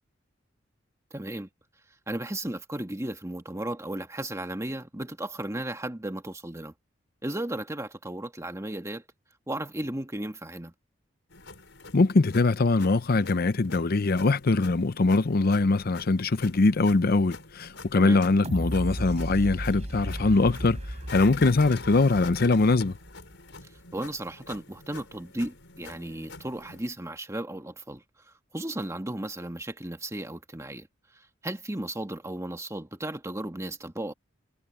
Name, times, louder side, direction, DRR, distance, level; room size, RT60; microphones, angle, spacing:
voice 1, 1.1-1.5 2.1-6.7 7.2-9.0 9.5-10.7 17.9-18.2 21.4-21.6 23.9-28.0 28.5-30.9 31.4-34.1, right 1 dB, 15° right, 1.7 m, -35 dB
sound 1, 11.3-26.8, left 3 dB, 70° left, 7.6 m, -45 dB
voice 2, 11.9-20.8 21.1-22.9, left 3 dB, 50° left, 0.6 m, -22 dB
sound 2, 18.4-23.3 23.8-23.9, equal, 35° right, 4.0 m, -35 dB
head